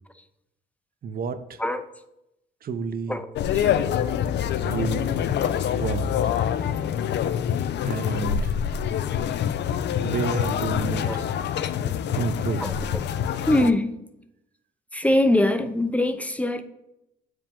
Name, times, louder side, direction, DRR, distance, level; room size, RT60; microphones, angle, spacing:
voice 1, 1.0-1.6 2.6-3.2 4.6-5.1 5.7-6.1 7.8-8.6 10.0-11.1 12.1-12.9, right 5 dB, 50° right, 11 dB, 0.6 m, -30 dB
voice 2, 1.6-1.9 3.1-3.6 11.0-11.3 11.8-12.0 12.6-13.0 13.5-13.9 14.9-16.6, left 1 dB, 5° left, 10 dB, 0.5 m, -23 dB
sound 1, 3.4-13.7, left 9 dB, 60° left, 0.4 m, -26 dB
7.1 x 4.9 x 3.6 m, 0.85 s
cardioid pair, 90°, 20 cm